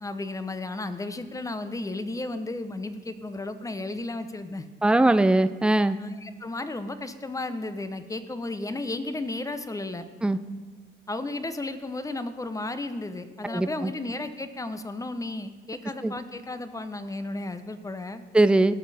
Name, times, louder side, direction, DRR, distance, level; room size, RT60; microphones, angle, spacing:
voice 1, 0.0-4.7 6.0-10.1 11.1-18.2, left 2 dB, 15° left, 10 dB, 0.8 m, -34 dB
voice 2, 4.8-6.0 10.2-10.4 13.4-13.9 16.0-16.1 18.3-18.7, right 2 dB, 5° right, 13 dB, 0.4 m, -21 dB
17.5 x 6.2 x 4.2 m, 1.3 s
cardioid pair, 90°, 20 cm